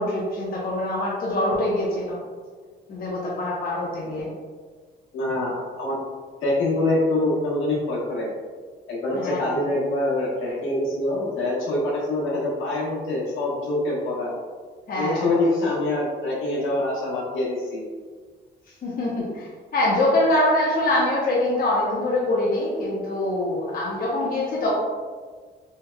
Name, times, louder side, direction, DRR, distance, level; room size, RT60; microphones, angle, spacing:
voice 1, 0.0-2.2 2.9-4.3 9.1-9.6 14.9-15.4 18.8-24.7, left 1 dB, 45° left, -5 dB, 0.7 m, -24 dB
voice 2, 5.1-6.0 6.4-8.3 8.9-14.3 14.9-17.8, left 2 dB, 80° left, -6 dB, 1.2 m, -25 dB
3.3 x 3.2 x 2.2 m, 1.5 s
cardioid pair, 90°, 20 cm